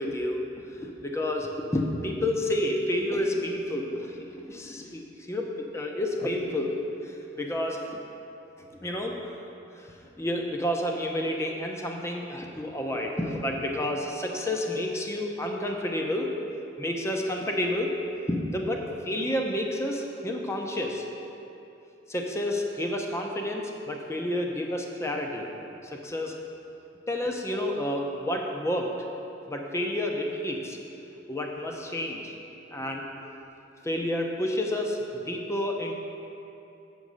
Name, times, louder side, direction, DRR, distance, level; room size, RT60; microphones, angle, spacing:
voice 1, 0.0-8.0 8.6-9.2 10.2-16.3 16.8-17.9 18.3-21.1 22.1-25.5 25.8-26.4 27.1-28.9 29.5-30.8 31.3-32.3 32.7-33.1 33.8-35.9, left 1 dB, 15° left, 1 dB, 0.7 m, -30 dB
7.5 x 5.3 x 6.2 m, 2.8 s
head